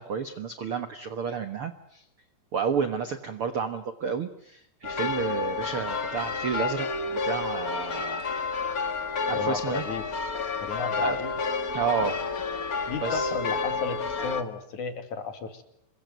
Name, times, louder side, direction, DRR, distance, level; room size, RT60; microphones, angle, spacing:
voice 1, 0.0-2.0 2.5-8.2 9.3-9.8 11.0-11.2 11.7-12.2 13.0-13.3, right 6 dB, 75° right, 9 dB, 1.2 m, -31 dB
sound 1, 4.8-14.4, left 4 dB, 85° left, 0.8 m, -30 dB
voice 2, 9.3-10.0 10.6-11.4 12.9-15.6, left 5 dB, 50° left, 7 dB, 3.6 m, -33 dB
27.5 x 22.5 x 9.5 m, 0.73 s
omnidirectional pair, 4.7 m